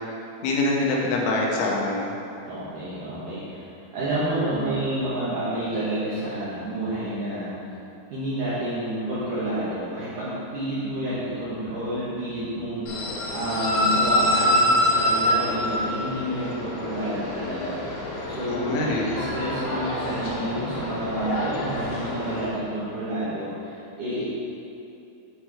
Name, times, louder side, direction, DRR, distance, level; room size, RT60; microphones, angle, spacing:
voice 1, 0.4-2.1 18.5-19.1, left 2 dB, 85° left, -2 dB, 3.3 m, -24 dB
voice 2, 2.4-7.6 8.1-24.2, right 1 dB, 70° right, -11 dB, 2.0 m, -29 dB
sound 1, 12.9-22.5, left 1 dB, 60° left, 2.7 m, -26 dB
9.3 x 4.5 x 4.7 m, 2.7 s
omnidirectional pair, 5.5 m